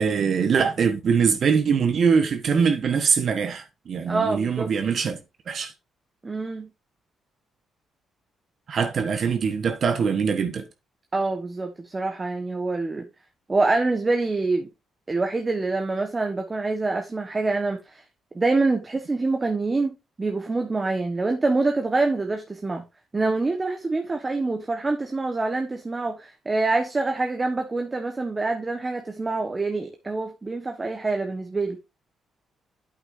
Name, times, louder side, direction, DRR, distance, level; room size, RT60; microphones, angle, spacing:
voice 1, 0.0-5.2 5.5-5.7 8.7-10.7, right 6 dB, 55° right, 1.3 m, -22 dB
voice 2, 4.1-4.7 6.2-6.7 11.1-13.1 13.5-14.7 15.1-18.0 18.3-22.8 23.1-31.8, right 3 dB, 25° right, 1.3 m, -26 dB
8.8 x 8.1 x 2.7 m
cardioid pair, 90°, 0 cm